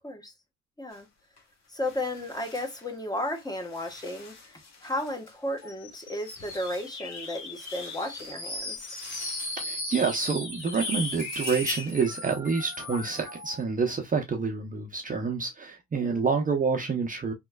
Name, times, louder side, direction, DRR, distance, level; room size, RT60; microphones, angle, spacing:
sound 1, 0.9-1.1 1.4-10.0 10.4-12.1, left 4 dB, 60° left, 1.3 m, -45 dB
voice 1, 1.7-8.8 16.0-16.2, left 1 dB, 15° left, 1.0 m, -34 dB
sound 2, 5.6-13.6, left 2 dB, 85° left, 2.3 m, -37 dB
voice 2, 9.6-17.3, right 5 dB, 30° right, 0.6 m, -28 dB
3.6 x 3.0 x 2.2 m
cardioid pair, 90°, 30 cm